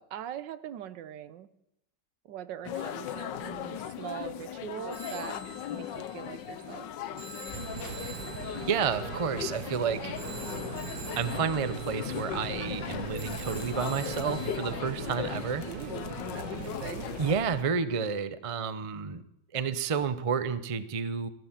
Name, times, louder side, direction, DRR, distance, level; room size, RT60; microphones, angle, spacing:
voice 1, 0.0-1.5 2.3-5.4 5.7-6.9 15.6-17.1, right 10 dB, 85° right, 14 dB, 1.5 m, -42 dB
sound 1, 2.6-17.4, left 10 dB, 85° left, 1.5 m, -38 dB
Telephone, 4.9-14.7, right 2 dB, 25° right, 7.8 m, -47 dB
sound 2, 7.5-17.6, right 9 dB, 65° right, 1.3 m, -41 dB
voice 2, 8.7-10.1 11.2-15.6 17.2-19.2 19.5-21.3, right 6 dB, 45° right, 13 dB, 0.4 m, -30 dB
15.0 x 12.5 x 7.4 m, 0.82 s
omnidirectional pair, 1.9 m